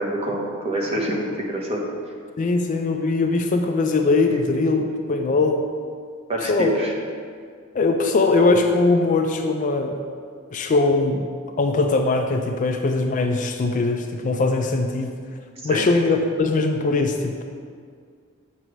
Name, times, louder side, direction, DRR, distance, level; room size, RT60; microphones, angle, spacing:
voice 1, 0.0-1.8 6.3-6.9 15.6-15.9, right 1 dB, 30° right, -1 dB, 0.9 m, -26 dB
voice 2, 2.4-5.7 6.4-6.8 7.7-10.0 10.5-11.3 11.6-15.1 15.6-17.4, left 3 dB, 35° left, 4 dB, 0.3 m, -21 dB
7.9 x 6.0 x 3.1 m, 2.1 s
head